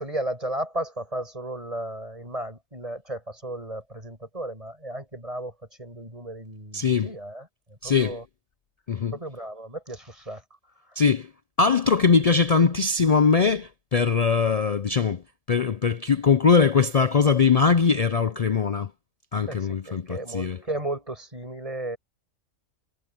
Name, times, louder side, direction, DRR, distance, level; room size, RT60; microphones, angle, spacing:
voice 1, 0.0-8.2 9.1-10.4 10.8-11.0 19.5-22.0, right 1 dB, 25° right, 6.6 m, -34 dB
voice 2, 6.7-7.1 7.8-8.2 8.9-9.1 11.0-11.3 11.6-15.2 15.5-18.9 19.3-20.0 20.3-20.6, left 5 dB, 60° left, 0.4 m, -21 dB
omnidirectional pair, 1.4 m